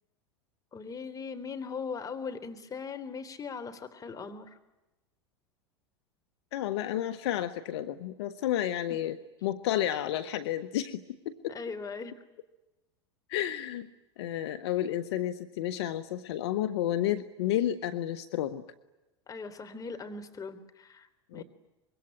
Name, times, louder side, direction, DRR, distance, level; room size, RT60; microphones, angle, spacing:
voice 1, 0.7-4.6 11.5-12.1 19.3-21.1 21.3-21.4, left 5 dB, 25° left, 7 dB, 3.7 m, -39 dB
voice 2, 6.5-11.5 13.3-13.9 14.2-18.6 21.3-21.4, left 12 dB, 70° left, 11 dB, 1.5 m, -31 dB
25.5 x 23.0 x 9.9 m, 1.0 s
hypercardioid pair, 90°, 15 cm